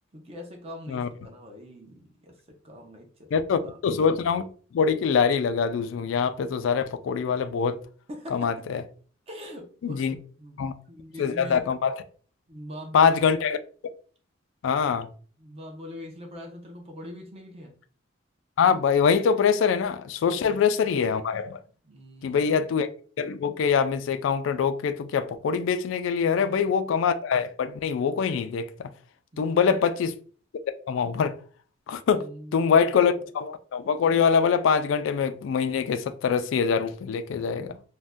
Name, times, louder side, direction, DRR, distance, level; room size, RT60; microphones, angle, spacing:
voice 1, 0.1-3.8 8.1-8.8 9.3-11.7 12.5-13.3 15.4-17.7 20.1-20.8 21.8-22.6 26.2-26.8 29.3-29.8 32.1-33.0 37.3-37.8, equal, 30° right, 0.6 m, -43 dB
voice 2, 3.3-4.4 4.7-7.8 8.3-8.8 9.8-10.2 10.6-10.7 11.2-12.0 12.9-13.6 14.6-15.1 18.6-21.6 22.2-22.9 23.2-28.9 29.4-30.1 30.9-31.3 31.9-32.2 32.5-37.7, left 6 dB, 70° left, 0.3 m, -24 dB
2.6 x 2.2 x 3.4 m
head